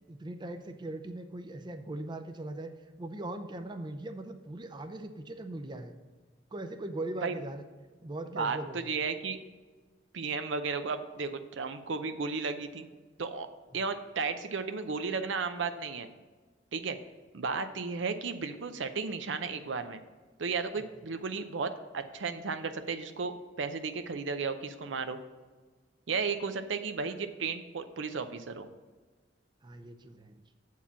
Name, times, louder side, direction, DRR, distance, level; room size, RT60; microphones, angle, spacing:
voice 1, 0.1-2.7 3.0-6.0 6.5-7.6 8.0-8.9 29.6-30.4, right 2 dB, 25° right, 7 dB, 0.5 m, -40 dB
voice 2, 8.3-9.4 10.1-12.9 13.2-13.5 13.7-16.1 16.7-17.0 17.3-20.0 20.4-25.2 26.1-28.7, right 4 dB, 85° right, 9 dB, 0.6 m, -34 dB
7.3 x 4.6 x 6.9 m, 1.4 s
head